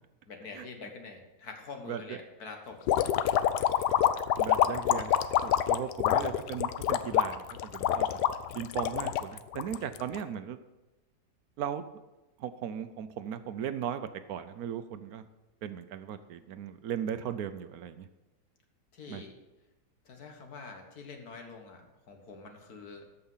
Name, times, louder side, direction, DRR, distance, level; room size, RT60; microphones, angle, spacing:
voice 1, 0.3-2.9 9.7-9.9 18.9-19.3 20.1-23.0, left 4 dB, 70° left, 4 dB, 2.0 m, -46 dB
sound 1, 2.9-10.2, left 11 dB, 90° left, 1.2 m, -26 dB
voice 2, 4.4-5.1 5.4-8.1 8.5-10.6 11.6-11.8 12.4-14.0 14.3-15.3 15.6-18.0 19.1-19.2, right 9 dB, 70° right, 11 dB, 1.1 m, -37 dB
13.5 x 5.6 x 5.6 m, 1.0 s
omnidirectional pair, 1.7 m